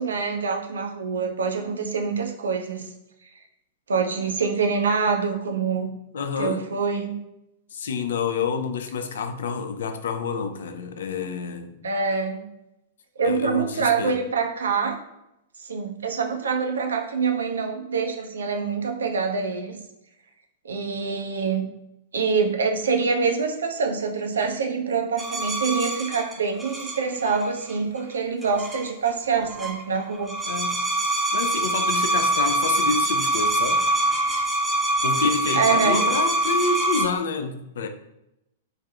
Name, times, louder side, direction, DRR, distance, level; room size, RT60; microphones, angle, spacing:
voice 1, 0.0-2.8 3.9-5.9 6.4-7.2 11.8-12.5 13.2-15.0 15.6-19.8 20.6-21.7 22.1-30.3 35.5-36.1, right 5 dB, 65° right, 4 dB, 0.4 m, -25 dB
voice 2, 6.1-6.6 7.7-11.8 13.2-14.2 30.5-30.9 31.3-33.8 35.0-37.9, left 5 dB, 60° left, 8 dB, 0.3 m, -28 dB
sound 1, 25.2-27.7 28.4-29.1 29.4-29.8 30.2-37.1, right 1 dB, 5° right, 0.5 m, -24 dB
3.2 x 2.5 x 2.3 m, 0.86 s
figure-of-eight pair, 100°, 0 cm